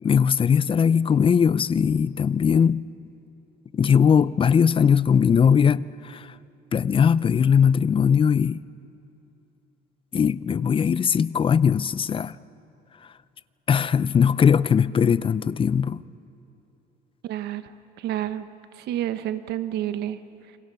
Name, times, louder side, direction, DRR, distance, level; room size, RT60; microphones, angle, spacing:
voice 1, 0.0-2.9 3.7-6.3 6.7-8.6 10.1-12.3 13.7-16.0, left 7 dB, 30° left, 0.5 m, -20 dB
voice 2, 17.2-17.7 18.0-18.5 18.7-20.2, right 12 dB, 80° right, 1.2 m, -29 dB
30.0 x 25.0 x 7.0 m
cardioid pair, 110°, 17 cm